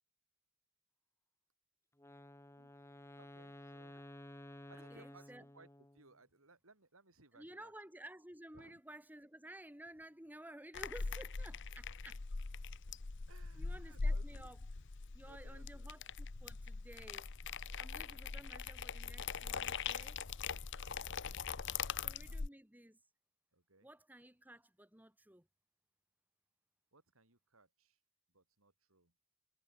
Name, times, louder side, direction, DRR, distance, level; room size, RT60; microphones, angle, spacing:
Wind instrument woodwind instrument, 2.0-6.1, left 1 dB, 15° left, 1.0 m, -54 dB
voice 1, 2.6-4.0 4.7-5.7 5.9-7.7 8.5-8.8 13.3-14.5 15.2-16.0 17.7-18.2 20.7-22.5 23.5-23.9 26.9-28.0 28.3-29.1, right 3 dB, 80° right, 4.7 m, -65 dB
voice 2, 4.7-5.5 7.3-12.2 13.5-14.6 15.1-20.2 22.0-23.0 23.8-25.5, right 1 dB, 10° right, 2.4 m, -55 dB
sound 1, 10.7-22.5, left 5 dB, 60° left, 0.9 m, -42 dB
head